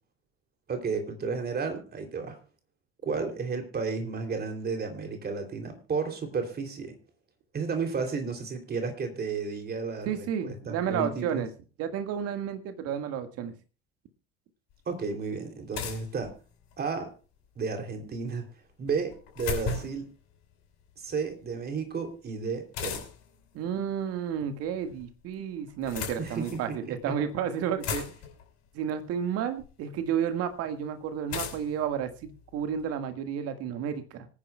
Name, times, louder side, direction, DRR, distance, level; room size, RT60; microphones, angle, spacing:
voice 1, 0.7-2.4 3.0-7.0 7.5-11.4 14.9-16.3 16.8-17.1 17.6-18.4 18.8-20.1 21.0-23.0 26.2-27.1, right 5 dB, 30° right, 5 dB, 3.1 m, -33 dB
voice 2, 10.1-11.5 11.8-13.5 23.5-28.1 28.7-34.3, right 8 dB, 50° right, 9 dB, 1.8 m, -31 dB
sound 1, 14.7-14.8 15.7-16.9 18.9-20.1 22.7-23.4 24.5-25.1 25.7-26.7 27.3-27.4 27.6-28.5 29.6-29.7 31.3-32.8, left 6 dB, 55° left, 5.7 m, -36 dB
25.0 x 10.0 x 2.3 m, 0.35 s
figure-of-eight pair, 65°, 31 cm